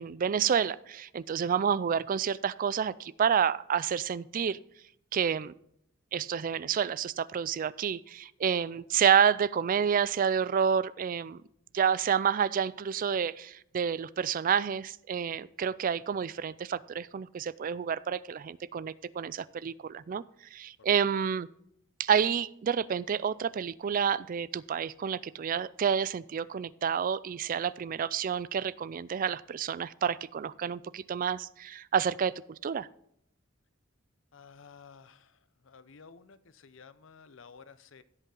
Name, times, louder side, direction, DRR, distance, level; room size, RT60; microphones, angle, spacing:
voice 1, 0.0-4.6 5.1-5.5 6.1-11.4 11.7-20.2 20.5-21.5 22.0-32.9, right 7 dB, 45° right, 19 dB, 0.3 m, -29 dB
voice 2, 34.3-38.0, left 5 dB, 70° left, 14 dB, 0.7 m, -53 dB
16.5 x 5.5 x 3.8 m, 0.73 s
head